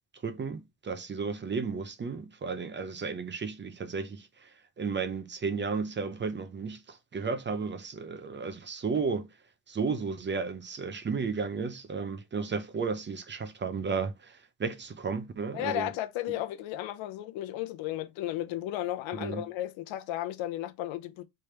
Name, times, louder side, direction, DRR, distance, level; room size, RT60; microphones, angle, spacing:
voice 1, 0.2-9.3 9.7-15.9 19.1-19.5, right 5 dB, 25° right, 0.6 m, -33 dB
voice 2, 15.5-21.2, left 13 dB, 90° left, 0.8 m, -34 dB
3.4 x 3.3 x 4.3 m
cardioid pair, 115°, 45 cm